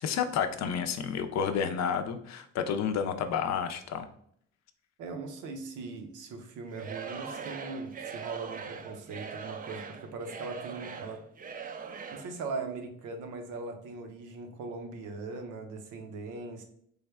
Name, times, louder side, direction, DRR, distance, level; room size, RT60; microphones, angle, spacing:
voice 1, 0.0-4.0, left 7 dB, 65° left, 8 dB, 0.5 m, -30 dB
voice 2, 5.0-11.2 12.1-16.6, right 3 dB, 85° right, 5 dB, 0.7 m, -40 dB
Singing / Crowd, 6.7-12.4, right 6 dB, 30° right, 0.3 m, -41 dB
3.4 x 2.2 x 3.3 m, 0.66 s
cardioid pair, 90°, 30 cm